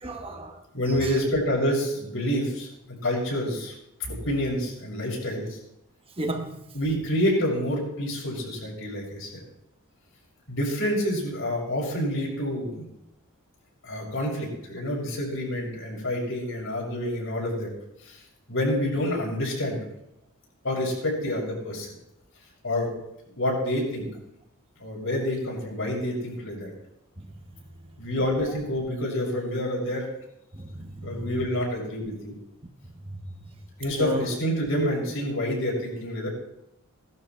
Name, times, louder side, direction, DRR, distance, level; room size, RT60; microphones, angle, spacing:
voice 1, 0.0-0.6 1.0-1.1 6.2-6.6 30.5-31.3 33.9-34.3, right 1 dB, 25° right, 1.3 m, -33 dB
voice 2, 0.7-3.7 4.1-5.6 6.7-9.4 10.5-12.9 13.8-17.7 18.0-18.2 18.5-19.8 20.6-21.9 22.6-22.9 23.3-24.1 24.8-26.7 28.0-30.1 31.0-32.3 33.8-36.3, equal, 65° left, 6.1 m, -28 dB
18.5 x 12.0 x 4.5 m
head